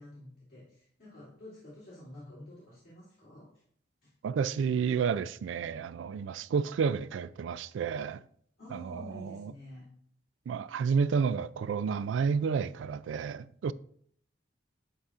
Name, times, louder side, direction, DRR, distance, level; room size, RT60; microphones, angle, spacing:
voice 1, 0.0-3.5 4.0-4.1 8.6-9.9, left 1 dB, 50° left, 2.5 m, -49 dB
voice 2, 4.2-8.2 8.7-9.5 10.5-13.7, right 6 dB, 80° right, 0.3 m, -30 dB
11.0 x 4.2 x 2.4 m
head